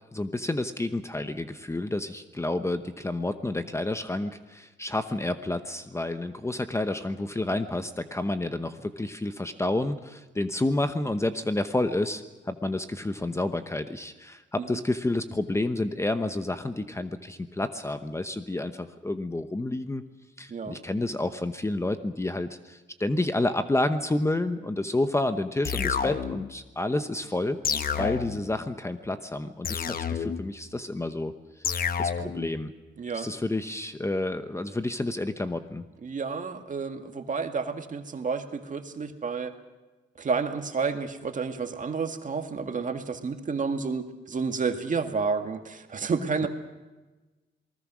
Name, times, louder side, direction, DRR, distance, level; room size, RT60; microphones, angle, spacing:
voice 1, 0.1-20.0 20.4-27.6 28.0-31.3 31.6-31.7 32.0-32.7 33.1-35.9, left 2 dB, 15° left, 9 dB, 0.9 m, -29 dB
sound 1, 25.6-26.5 27.6-28.5 29.6-30.5 31.6-32.5, left 7 dB, 50° left, 1.1 m, -29 dB
voice 2, 33.0-33.3 36.0-39.5 40.2-46.5, right 5 dB, 40° right, 6 dB, 1.9 m, -30 dB
27.5 x 19.5 x 6.2 m, 1.2 s
cardioid pair, 115°, 19 cm